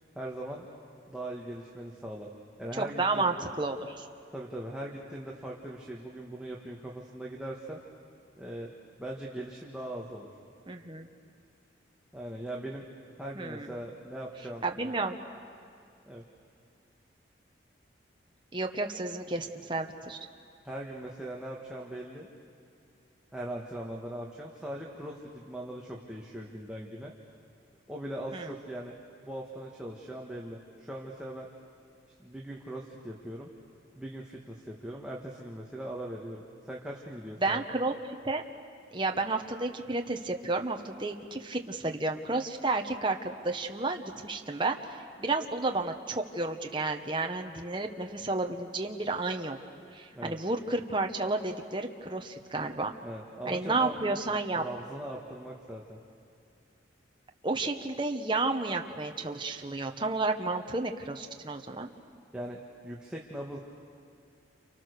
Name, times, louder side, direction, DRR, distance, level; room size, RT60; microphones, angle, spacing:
voice 1, 0.2-0.7 1.1-2.3 2.6-3.5 4.3-7.8 8.4-8.7 9.0-10.3 12.1-12.8 13.2-15.0 16.1-16.2 20.6-22.3 23.3-27.1 27.9-29.0 29.2-31.5 32.2-33.5 34.0-37.6 50.2-50.4 53.0-54.0 54.5-56.0 62.3-63.6, right 1 dB, 5° right, -3 dB, 1.7 m, -40 dB
voice 2, 2.7-4.1 10.7-11.1 13.4-13.7 14.6-15.2 18.5-20.2 28.3-28.5 37.4-38.4 38.9-49.6 49.9-52.9 53.4-54.6 57.4-61.9, right 3 dB, 25° right, 3 dB, 1.2 m, -31 dB
29.5 x 29.0 x 6.8 m, 2.4 s
head